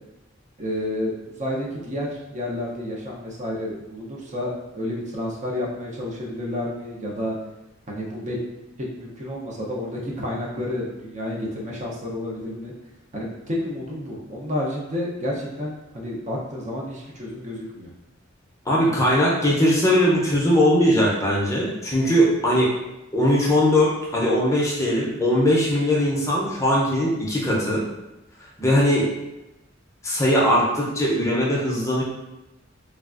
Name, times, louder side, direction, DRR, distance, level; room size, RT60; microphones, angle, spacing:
voice 1, 0.6-7.4 7.9-8.4 8.8-12.7 13.1-17.9, left 1 dB, 35° right, -3 dB, 0.6 m, -30 dB
voice 2, 18.7-22.7 23.1-27.8 28.6-29.0 30.0-32.0, equal, 15° left, -5 dB, 0.6 m, -20 dB
3.3 x 2.4 x 2.4 m, 0.99 s
head